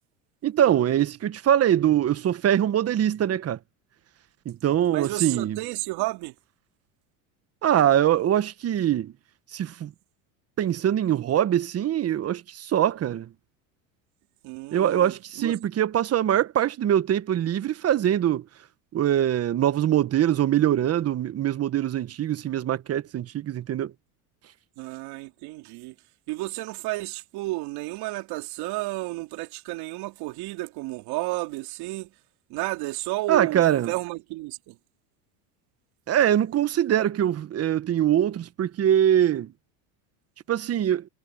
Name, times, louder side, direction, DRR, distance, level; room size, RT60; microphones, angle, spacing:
voice 1, 0.4-3.6 4.4-5.6 7.6-9.1 9.5-9.9 10.6-13.3 14.7-18.4 18.9-23.9 33.3-33.9 36.1-39.5 40.5-41.0, right 11 dB, 35° right, 1.4 m, -23 dB
voice 2, 4.9-6.3 14.4-15.6 24.8-25.9 26.3-32.1 32.5-34.8, right 21 dB, 60° right, 3.2 m, -32 dB
supercardioid pair, 105°, 42 cm